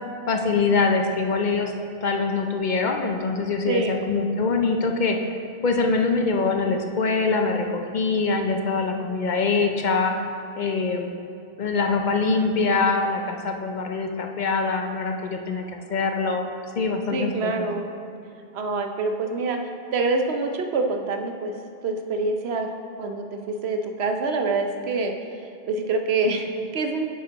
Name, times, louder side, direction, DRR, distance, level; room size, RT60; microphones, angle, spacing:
voice 1, 0.3-1.7 2.0-5.2 5.6-10.1 10.5-11.1 11.6-15.6 15.9-16.5 16.8-17.7, left 4 dB, 55° left, 3 dB, 0.7 m, -23 dB
voice 2, 3.7-4.0 17.1-17.9 18.5-19.6 19.9-21.5 21.8-22.7 23.0-25.1 25.7-27.2, right 3 dB, 90° right, 4 dB, 1.0 m, -26 dB
9.0 x 6.5 x 3.9 m, 2.6 s
omnidirectional pair, 1.0 m